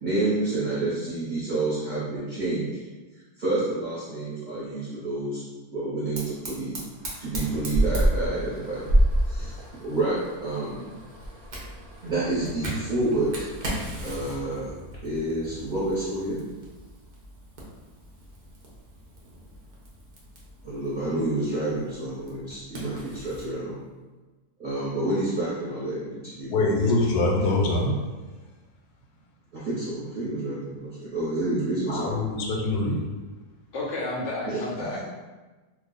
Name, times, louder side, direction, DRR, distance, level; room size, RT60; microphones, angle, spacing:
voice 1, 0.0-2.7 3.4-5.4 5.7-6.8 7.2-8.8 9.3-10.9 12.0-13.3 14.0-14.7 15.0-16.4 20.6-23.7 24.6-26.9 29.5-32.2 34.5-34.6, right 2 dB, 40° right, -10 dB, 0.7 m, -29 dB
Fire, 6.2-23.5, right 1 dB, 65° right, 0.4 m, -31 dB
voice 2, 26.5-28.0 31.9-33.0, left 2 dB, 85° left, -1 dB, 1.1 m, -24 dB
voice 3, 33.7-35.0, left 2 dB, 65° left, -3 dB, 0.7 m, -31 dB
2.5 x 2.3 x 3.8 m, 1.2 s
omnidirectional pair, 1.7 m